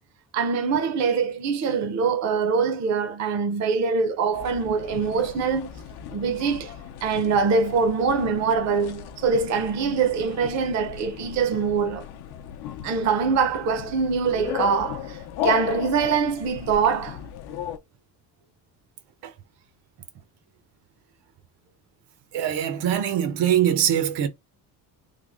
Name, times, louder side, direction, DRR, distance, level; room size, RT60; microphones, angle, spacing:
voice 1, 0.3-5.7 6.1-6.7 7.0-12.1 12.8-15.2 15.4-17.2, right 5 dB, 45° right, 0.5 m, -23 dB
sound 1, 4.3-17.8, left 10 dB, 70° left, 0.6 m, -36 dB
voice 2, 22.3-24.3, right 10 dB, 80° right, 0.8 m, -23 dB
3.3 x 2.0 x 3.4 m
cardioid pair, 170°, 40 cm